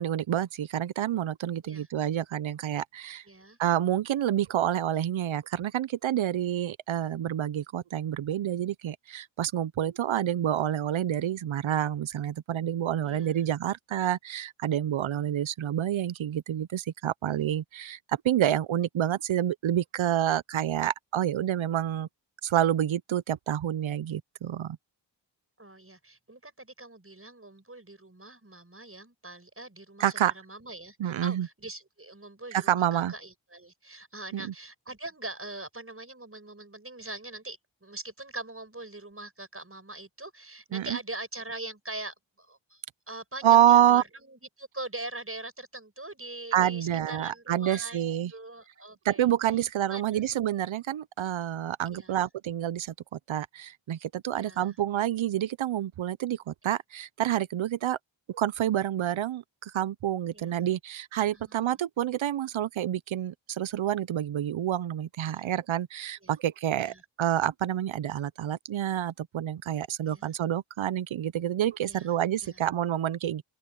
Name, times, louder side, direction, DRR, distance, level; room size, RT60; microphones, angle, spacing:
voice 1, 0.0-3.2 3.6-22.1 22.4-24.8 30.0-30.3 31.0-31.5 32.5-33.1 34.3-34.5 40.7-41.0 43.4-44.0 46.5-48.3 49.0-58.0 58.3-73.4, right 11 dB, 85° right, 0.7 m, -28 dB
voice 2, 3.3-3.6 13.0-13.4 25.6-48.0 48.3-49.6 49.9-50.2 51.9-52.2 54.3-54.8 56.7-56.8 60.3-60.5 61.3-61.8 65.3-65.5 66.2-66.3 66.8-67.0 70.0-70.3 71.8-72.1 72.4-72.6, right 2 dB, 30° right, 7.3 m, -42 dB
open air
cardioid pair, 45°, 46 cm